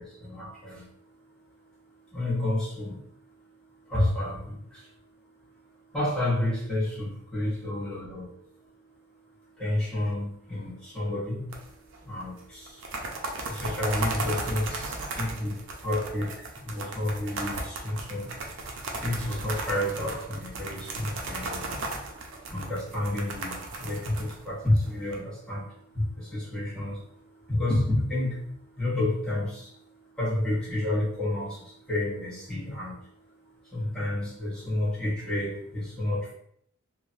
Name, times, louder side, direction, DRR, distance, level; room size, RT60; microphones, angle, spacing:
voice 1, 0.0-5.5 5.9-36.3, left 1 dB, 5° left, -9 dB, 0.9 m, -31 dB
sound 1, 11.5-12.0 12.2-12.3 12.7-25.1, right 2 dB, 65° right, 0.5 m, -35 dB
3.2 x 2.1 x 2.5 m, 0.68 s
head